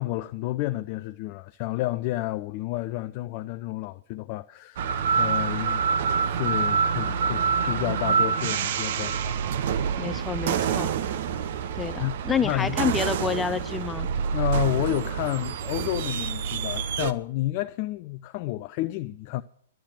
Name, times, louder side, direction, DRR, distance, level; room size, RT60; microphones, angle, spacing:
voice 1, 0.0-4.9 5.2-5.9 6.2-9.4 12.0-12.1 12.4-12.8 14.3-19.4, left 17 dB, 40° left, 0.4 m, -30 dB
sound 1, 4.8-17.1, right 6 dB, 50° right, 0.7 m, -27 dB
voice 2, 10.0-10.9 11.8-14.1, left 6 dB, 10° left, 0.7 m, -28 dB
11.5 x 9.0 x 7.5 m
figure-of-eight pair, 110°, 0 cm